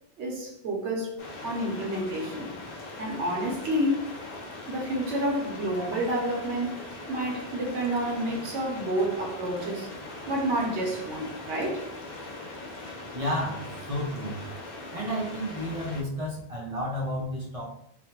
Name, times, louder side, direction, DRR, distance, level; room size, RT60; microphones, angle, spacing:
voice 1, 0.2-1.2 1.4-2.7 3.0-4.1 4.7-9.9 10.3-11.9, right 1 dB, 80° right, 1.0 m, -29 dB
sound 1, 1.2-16.0, left 2 dB, 50° left, 0.6 m, -41 dB
voice 2, 13.1-14.4 14.9-17.7, equal, 45° right, 0.5 m, -31 dB
3.1 x 2.1 x 2.8 m
omnidirectional pair, 1.2 m